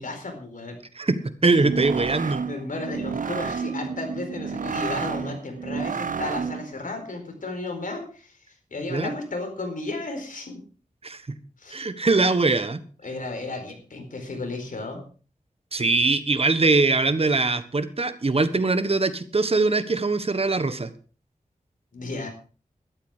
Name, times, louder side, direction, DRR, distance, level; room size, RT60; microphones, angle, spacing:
voice 1, 0.0-0.8 2.5-8.4 8.7-10.6 11.6-11.8 13.0-15.0 21.9-22.3, left 2 dB, 75° left, 5 dB, 4.4 m, -33 dB
voice 2, 1.0-2.4 8.9-9.1 11.0-11.2 11.7-12.8 15.7-20.9, right 3 dB, 45° right, 12 dB, 1.3 m, -22 dB
sound 1, 1.5-6.8, right 6 dB, 75° right, 0.9 m, -31 dB
12.5 x 12.5 x 5.0 m, 0.38 s
wide cardioid pair, 65°, 14 cm